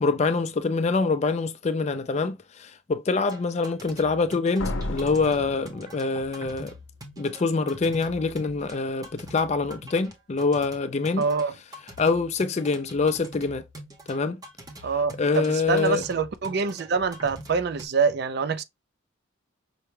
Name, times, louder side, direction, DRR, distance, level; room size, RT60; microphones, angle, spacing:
voice 1, 0.0-6.7 7.2-11.2 12.0-13.6 14.1-14.4 15.2-16.0, left 4 dB, 35° left, 0.4 m, -25 dB
sound 1, 3.3-17.9, right 1 dB, 20° right, 0.7 m, -44 dB
Slam, 4.6-6.5, left 2 dB, 80° left, 0.7 m, -33 dB
voice 2, 11.2-11.5 14.8-18.6, right 5 dB, 55° right, 0.4 m, -25 dB
5.7 x 2.2 x 3.2 m
head